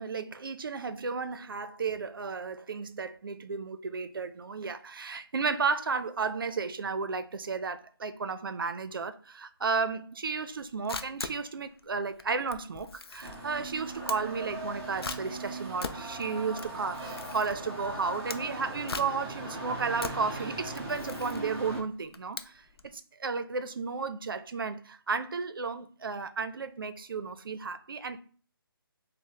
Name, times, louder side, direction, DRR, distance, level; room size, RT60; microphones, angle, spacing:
voice 1, 0.0-28.2, right 5 dB, 65° right, 0.5 m, -33 dB
Camera, 10.5-22.9, left 4 dB, 80° left, 0.5 m, -42 dB
sound 1, 13.2-21.8, right 2 dB, 10° right, 0.4 m, -39 dB
6.1 x 2.1 x 2.8 m
hypercardioid pair, 170°, 13 cm